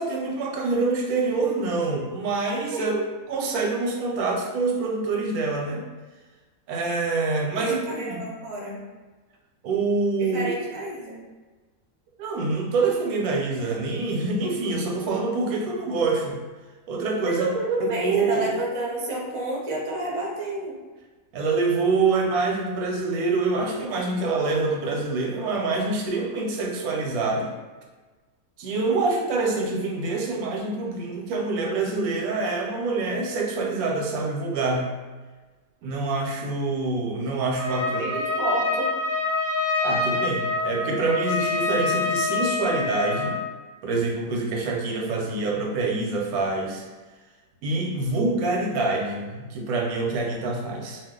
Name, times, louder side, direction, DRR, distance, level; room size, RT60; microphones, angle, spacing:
voice 1, 0.0-2.9 3.3-5.8 6.7-8.3 9.6-10.4 12.2-16.4 16.9-17.5 17.8-18.5 21.3-27.5 28.6-34.9 35.8-38.1 39.8-43.4 43.8-46.8 47.6-51.0, right 3 dB, 90° right, 0 dB, 1.1 m, -26 dB
voice 2, 2.7-3.0 7.5-8.8 10.2-11.2 17.3-20.7 37.9-38.9, right 2 dB, 45° right, -4 dB, 0.4 m, -29 dB
Trumpet, 37.6-43.4, left 3 dB, 15° left, 0.9 m, -26 dB
2.5 x 2.3 x 3.5 m, 1.3 s
omnidirectional pair, 1.5 m